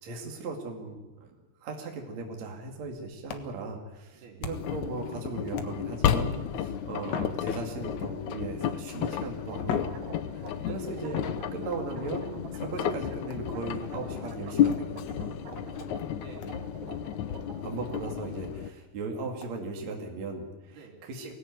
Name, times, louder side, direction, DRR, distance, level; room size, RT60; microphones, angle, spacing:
voice 1, 0.0-1.3 1.6-11.2 11.5-15.3 17.6-21.3, right 3 dB, 45° right, 1 dB, 3.3 m, -38 dB
sound 1, 3.3-4.9 5.5-6.1 7.0-8.1 9.0-9.1 9.6-10.7 11.1-11.9 13.3-13.6 14.7-14.9 15.5-15.6 16.0-16.1 16.4-16.6 16.9-17.0 17.4-17.5 17.9-18.0 18.4-18.5 19.4-19.5, left 6 dB, 55° left, 1.9 m, -40 dB
voice 2, 4.1-4.5 10.6-11.0 15.5-16.7 20.7-21.0, right 5 dB, 70° right, 2 dB, 5.1 m, -50 dB
Engine, 4.5-18.7, left 9 dB, 75° left, 1.8 m, -32 dB
sound 2, 9.7-13.3 13.5-14.7 15.0-18.3, right 7 dB, 90° right, 4.9 m, -46 dB
23.5 x 18.5 x 9.5 m, 1.1 s
omnidirectional pair, 4.7 m